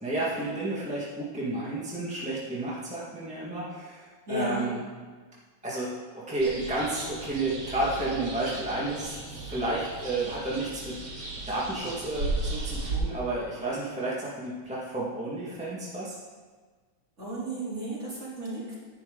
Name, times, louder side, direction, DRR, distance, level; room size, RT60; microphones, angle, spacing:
voice 1, 0.0-4.8 5.6-9.2 9.5-11.0 11.5-16.2, right 2 dB, 5° right, -7 dB, 0.8 m, -31 dB
voice 2, 4.3-4.7 17.2-18.8, right 1 dB, 20° right, -8 dB, 3.5 m, -33 dB
sound 1, 6.4-13.0, right 2 dB, 40° right, 1.4 m, -36 dB
10.5 x 10.5 x 3.9 m, 1.5 s
omnidirectional pair, 3.5 m